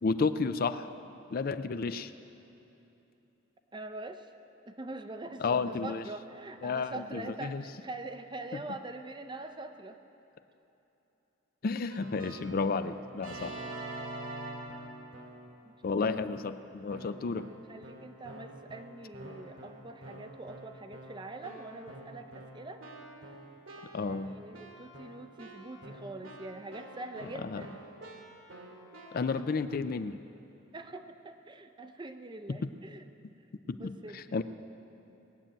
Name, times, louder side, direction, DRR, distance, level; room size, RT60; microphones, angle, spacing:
voice 1, 0.0-0.9 1.3-2.1 5.4-6.0 6.6-7.6 8.5-8.6 11.6-13.5 15.8-17.5 23.9-24.3 27.4-27.6 29.1-30.2 32.5-32.7 33.7-34.4, left 4 dB, 45° left, 11 dB, 0.4 m, -32 dB
voice 2, 3.7-4.3 4.7-10.0 15.7-15.8 17.7-22.8 23.9-27.8 30.7-33.1 33.7-34.4, right 2 dB, 20° right, 7 dB, 0.6 m, -44 dB
Keyboard (musical), 11.9-15.5 16.0-16.5 16.9-29.4, right 1 dB, 80° right, 2.1 m, -47 dB
19.5 x 7.4 x 9.0 m, 3.0 s
head